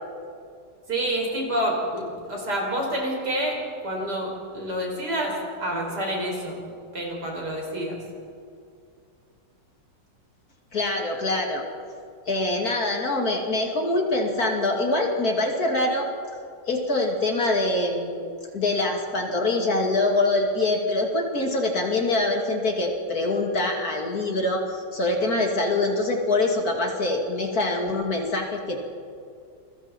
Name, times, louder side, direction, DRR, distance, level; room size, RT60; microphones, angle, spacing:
voice 1, 0.9-3.6 3.8-6.6 6.9-8.0, right 1 dB, 60° right, -1 dB, 5.9 m, -28 dB
voice 2, 10.7-11.6 12.3-16.1 16.7-18.2 18.5-28.8, left 2 dB, 50° left, 1 dB, 3.0 m, -24 dB
28.5 x 22.0 x 4.5 m, 2.4 s
omnidirectional pair, 2.0 m